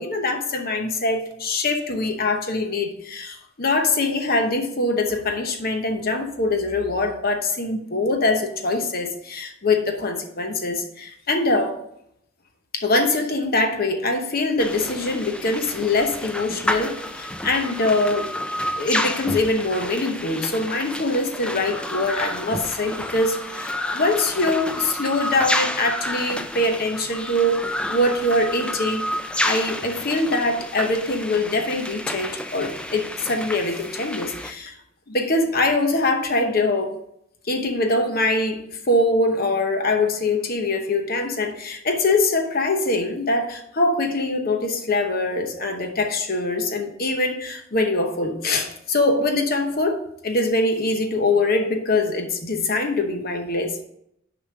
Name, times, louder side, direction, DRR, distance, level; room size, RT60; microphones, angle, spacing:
voice 1, 0.0-11.8 12.7-18.3 18.7-27.6 27.9-29.0 29.4-34.8 35.1-37.0 37.5-53.8, left 2 dB, 45° left, 5 dB, 0.9 m, -23 dB
sound 1, 14.6-34.5, left 1 dB, 5° left, 0.4 m, -30 dB
6.8 x 5.0 x 5.0 m, 0.74 s
head